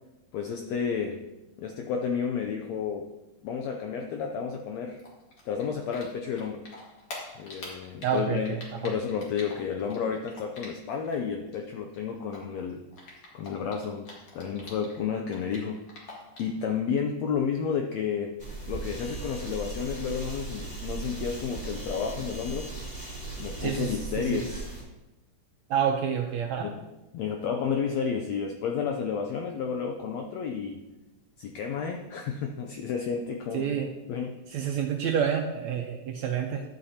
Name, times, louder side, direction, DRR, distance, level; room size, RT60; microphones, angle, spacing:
voice 1, 0.3-1.2 1.6-3.1 3.4-5.0 5.4-6.7 7.4-8.6 8.8-12.8 13.3-14.1 14.3-15.8 16.4-18.4 18.7-22.7 23.4-24.7 26.6-26.9 27.1-30.8 31.4-33.7 34.1-34.7, left 6 dB, 80° left, 3 dB, 1.5 m, -31 dB
Typing, 5.0-11.1 11.4-15.0 15.3-16.6, left 2 dB, 50° left, 2.7 m, -45 dB
voice 2, 8.0-8.6 23.6-23.9 24.2-24.4 25.7-26.7 33.5-33.9 34.5-36.6, right 8 dB, 80° right, 3 dB, 1.6 m, -28 dB
sound 1, 18.4-24.8, right 3 dB, 15° left, 2.3 m, -38 dB
12.5 x 8.2 x 2.8 m, 1.0 s
omnidirectional pair, 3.8 m